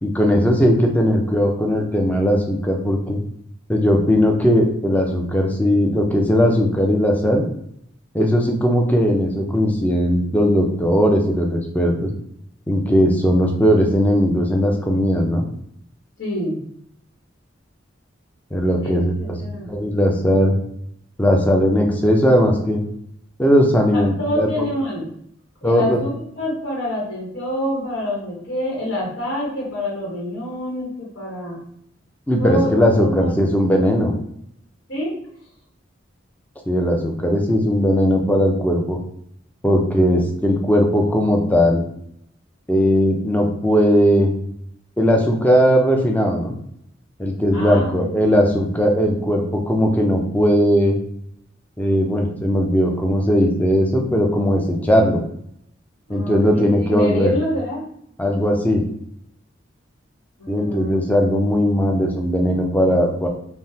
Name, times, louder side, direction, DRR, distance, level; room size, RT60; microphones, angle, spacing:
voice 1, 0.0-3.2 3.7-7.4 8.1-12.1 12.7-15.4 18.5-19.4 19.7-20.6 21.2-22.8 23.4-24.5 25.6-26.0 32.3-34.1 36.7-39.0 39.6-41.8 42.7-44.3 45.0-46.5 47.2-51.0 51.8-55.2 56.1-57.3 58.2-58.8 60.5-63.3, equal, 10° left, 1 dB, 0.5 m, -18 dB
voice 2, 16.2-16.6 18.8-19.7 23.9-25.1 25.6-31.6 32.4-33.4 34.9-35.2 47.5-48.4 56.1-57.9 60.4-60.9, equal, 75° left, -5 dB, 1.0 m, -27 dB
3.4 x 2.1 x 2.7 m, 0.69 s
head